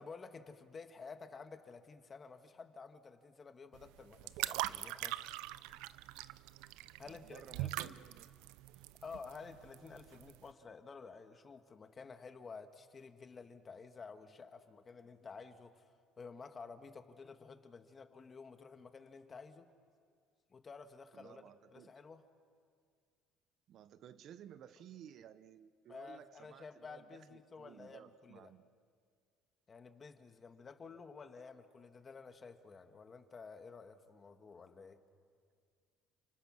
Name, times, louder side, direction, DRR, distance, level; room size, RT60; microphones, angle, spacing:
voice 1, 0.0-5.3 7.0-8.0 9.0-19.7 20.5-21.4 21.7-22.2 25.9-28.5 29.7-35.0, left 4 dB, 25° left, 8 dB, 1.5 m, -52 dB
sound 1, 3.7-10.5, right 16 dB, 90° right, 0.6 m, -42 dB
voice 2, 7.0-8.5 21.1-21.9 23.7-28.7, right 10 dB, 50° right, 14 dB, 0.7 m, -56 dB
30.0 x 28.5 x 6.3 m, 2.2 s
cardioid pair, 145°, 0 cm